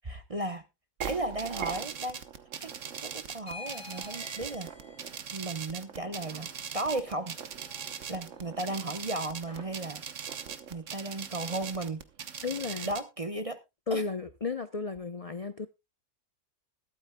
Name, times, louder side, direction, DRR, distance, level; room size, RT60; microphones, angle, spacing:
voice 1, 0.0-0.6 1.1-2.2 2.6-2.7 3.0-4.7 5.3-7.4 8.1-10.4 10.7-12.0 12.9-13.6 13.9-14.0, right 2 dB, 30° right, 0.8 m, -35 dB
sound 1, 1.0-13.0, right 8 dB, 60° right, 1.3 m, -40 dB
sound 2, 3.4-9.9, left 3 dB, 5° left, 4.3 m, -50 dB
voice 2, 12.4-12.9 13.9-15.7, left 4 dB, 40° left, 0.5 m, -33 dB
21.0 x 8.8 x 2.2 m
omnidirectional pair, 1.6 m